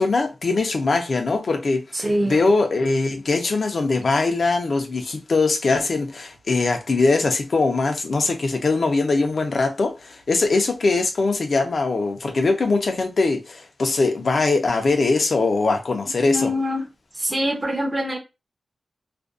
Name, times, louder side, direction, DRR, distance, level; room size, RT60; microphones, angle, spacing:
voice 1, 0.0-1.8 2.2-16.5, left 3 dB, 60° left, 0.6 m, -21 dB
voice 2, 1.9-2.5 16.3-16.9 17.1-18.2, equal, 25° right, 0.7 m, -24 dB
2.5 x 2.2 x 2.5 m
wide cardioid pair, 115°, 0 cm